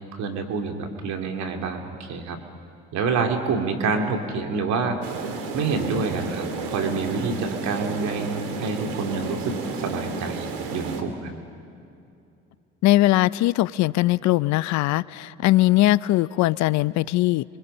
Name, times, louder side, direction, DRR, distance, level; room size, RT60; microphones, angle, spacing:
voice 1, 0.1-2.4 2.9-5.0 5.5-9.6 9.8-11.3, right 4 dB, 65° right, 4 dB, 2.8 m, -27 dB
sound 1, 5.0-11.0, right 4 dB, 85° right, 2.3 m, -32 dB
voice 2, 12.8-17.4, left 16 dB, 65° left, 19 dB, 0.6 m, -20 dB
29.5 x 25.0 x 5.6 m, 2.6 s
supercardioid pair, 65°, 30 cm